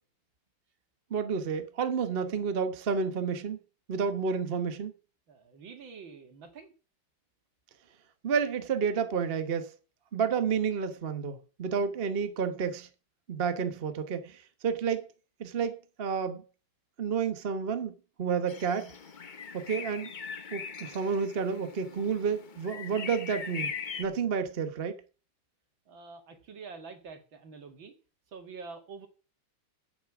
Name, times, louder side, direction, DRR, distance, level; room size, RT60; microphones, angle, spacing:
voice 1, 1.1-3.6 3.9-4.9 8.2-9.7 10.1-12.9 13.3-15.1 15.4-16.4 17.0-18.9 19.5-20.1 20.5-23.7 24.0-25.0, right 6 dB, 35° right, 1.0 m, -30 dB
voice 2, 5.3-6.7 25.9-28.0 28.3-29.1, right 5 dB, 65° right, 2.8 m, -46 dB
sound 1, 18.5-24.0, left 6 dB, 85° left, 0.4 m, -41 dB
10.5 x 8.5 x 6.0 m
omnidirectional pair, 2.3 m